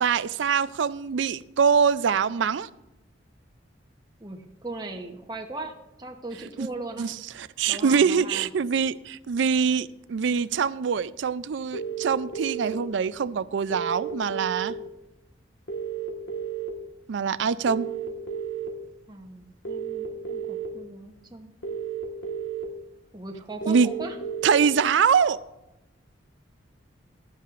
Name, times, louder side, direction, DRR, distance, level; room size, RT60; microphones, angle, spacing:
voice 1, 0.0-2.7 6.6-6.7 7.0-14.8 17.1-17.9 23.7-23.9 24.4-25.4, right 6 dB, 65° right, 0.4 m, -24 dB
voice 2, 4.2-7.1 7.7-8.5 19.1-21.5 23.1-24.2, right 2 dB, 20° right, 0.9 m, -38 dB
sound 1, 11.7-12.7 13.7-14.7 15.7-16.7 17.7-18.7 19.6-20.7 21.6-22.6 23.6-24.6, right 8 dB, 70° left, 1.6 m, -32 dB
15.5 x 11.5 x 2.5 m
head